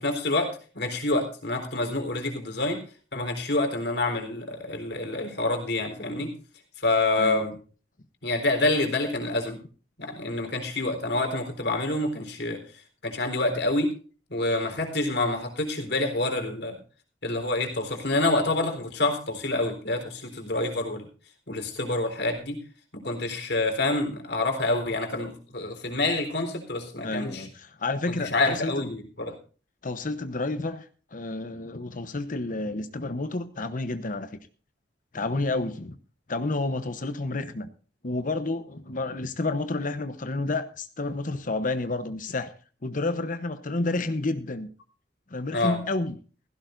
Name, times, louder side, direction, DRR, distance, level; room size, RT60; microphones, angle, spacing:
voice 1, 0.0-2.8 3.1-6.3 6.8-7.5 8.2-9.6 10.0-12.6 13.0-13.9 14.3-16.8 17.2-21.1 21.5-22.6 22.9-27.5 28.3-29.3 45.5-45.8, left 2 dB, 70° left, 5 dB, 3.9 m, -27 dB
voice 2, 27.0-28.9 29.8-34.4 35.1-36.0 36.3-37.7 38.0-42.5 42.8-44.7 45.3-46.2, left 2 dB, 50° left, 10 dB, 0.9 m, -30 dB
16.0 x 16.0 x 2.6 m, 0.38 s
head